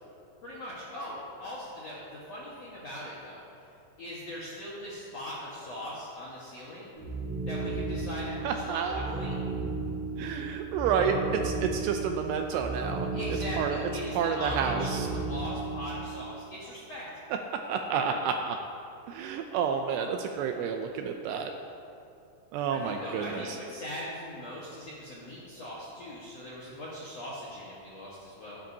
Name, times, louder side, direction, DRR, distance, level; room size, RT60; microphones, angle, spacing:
voice 1, 0.4-3.4 4.0-6.9 7.5-9.4 13.1-17.1 17.9-18.2 22.7-28.6, left 1 dB, 65° left, -8 dB, 1.7 m, -40 dB
sound 1, 7.0-16.2, right 3 dB, 45° right, 4.2 m, -34 dB
voice 2, 8.4-9.2 10.2-13.2 13.6-13.8 14.2-15.1 17.7-18.6 19.1-21.5 22.5-23.6, right 6 dB, 80° right, 4 dB, 2.5 m, -30 dB
17.0 x 10.5 x 2.8 m, 2.6 s
omnidirectional pair, 5.3 m